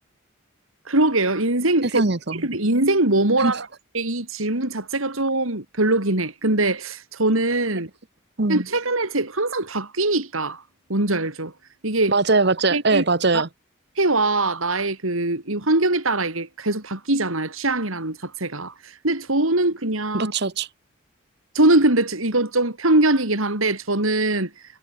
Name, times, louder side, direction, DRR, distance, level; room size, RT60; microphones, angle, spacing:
voice 1, 0.9-2.0 2.4-3.6 3.9-7.9 8.5-10.6 10.9-11.5 11.8-12.1 12.7-13.0 13.3-13.4 14.0-20.3 21.5-24.5, right 2 dB, 80° right, 4.1 m, -22 dB
voice 2, 1.9-2.4 3.4-3.5 7.7-7.8 8.4-8.7 12.1-13.5 20.1-20.7, right 3 dB, 50° right, 1.2 m, -21 dB
head